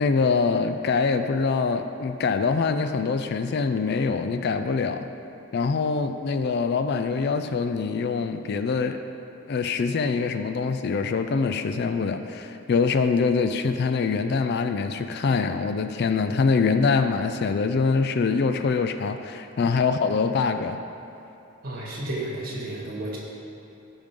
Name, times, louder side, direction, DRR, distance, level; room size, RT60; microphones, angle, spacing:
voice 1, 0.0-5.1 5.5-9.0 9.5-20.8, left 4 dB, 50° left, 9 dB, 0.4 m, -24 dB
voice 2, 21.6-23.2, right 1 dB, 45° right, -3 dB, 1.8 m, -32 dB
14.5 x 5.3 x 3.7 m, 2.8 s
head